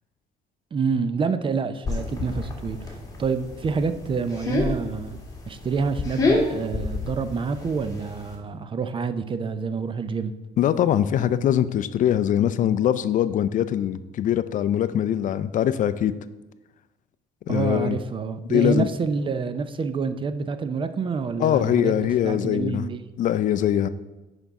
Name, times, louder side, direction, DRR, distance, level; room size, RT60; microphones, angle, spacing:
voice 1, 0.7-5.2 5.5-10.3 17.5-23.0, right 5 dB, 30° right, 11 dB, 0.5 m, -27 dB
sound 1, 1.8-8.4, left 3 dB, 20° left, 1.8 m, -29 dB
voice 2, 10.6-16.1 17.5-18.0 18.5-18.9 21.4-22.8 23.2-23.9, left 10 dB, 50° left, 14 dB, 0.4 m, -22 dB
9.9 x 5.3 x 3.6 m, 1.1 s
cardioid pair, 110°, 17 cm